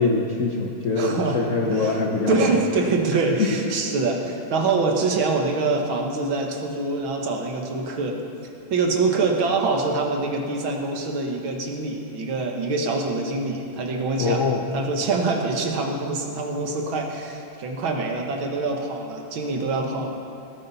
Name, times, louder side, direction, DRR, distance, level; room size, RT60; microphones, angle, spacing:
voice 1, 0.0-2.5 3.1-3.5 14.2-14.6, left 4 dB, 50° left, -1 dB, 1.0 m, -23 dB
voice 2, 1.0-1.4 1.7-2.0 2.3-8.2 8.7-14.4 14.7-20.1, right 3 dB, 75° right, 2 dB, 2.2 m, -25 dB
19.0 x 11.5 x 4.2 m, 2.6 s
omnidirectional pair, 2.2 m